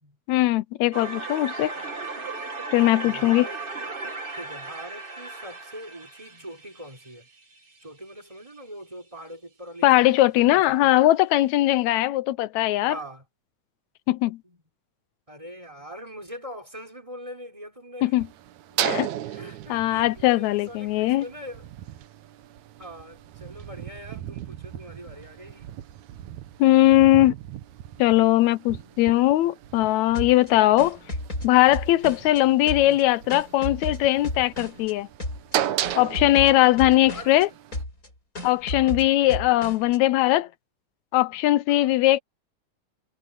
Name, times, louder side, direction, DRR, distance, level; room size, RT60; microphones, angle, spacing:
voice 1, 0.3-1.7 2.7-3.5 9.8-13.0 14.1-14.4 18.0-18.3 18.8-19.1 19.7-21.2 26.6-27.3 28.0-31.0 31.4-35.1 36.0-37.5 38.4-40.5 41.1-42.2, left 16 dB, 80° left, 1.7 m, -20 dB
sound 1, 0.9-7.8, right 3 dB, 45° right, 0.7 m, -36 dB
voice 2, 2.9-4.0 4.3-7.3 7.8-10.9 12.9-13.2 14.4-14.6 15.3-18.2 19.3-21.7 22.8-25.8 28.7-29.1 32.8-33.0 33.9-34.3 37.0-37.6 38.7-39.0 39.4-39.5 40.2-40.5 41.2-41.4 41.7-41.9, equal, 10° right, 3.1 m, -43 dB
sound 2, 18.2-37.8, right 12 dB, 70° right, 2.3 m, -36 dB
sound 3, 30.1-32.4 32.7-34.9 35.2-35.5 35.8-37.4 37.7-38.1 38.3-40.0, left 1 dB, 25° left, 7.6 m, -33 dB
omnidirectional pair, 3.6 m